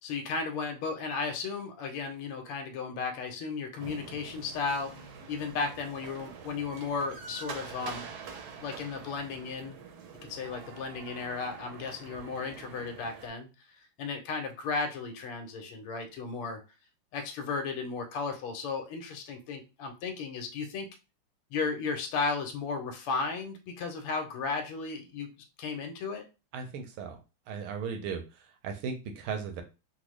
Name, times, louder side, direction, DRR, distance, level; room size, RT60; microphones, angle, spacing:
voice 1, 0.0-4.9 5.3-8.1 8.6-9.8 10.3-13.5 14.0-16.6 17.1-20.9 21.5-25.3 25.6-26.2, left 4 dB, 90° left, 5 dB, 1.6 m, -34 dB
Train Station, 3.8-13.3, right 5 dB, 70° right, 0.9 m, -46 dB
voice 2, 26.5-27.2 27.5-29.6, right 6 dB, 85° right, 4 dB, 1.6 m, -37 dB
4.0 x 2.1 x 3.1 m, 0.29 s
omnidirectional pair, 2.4 m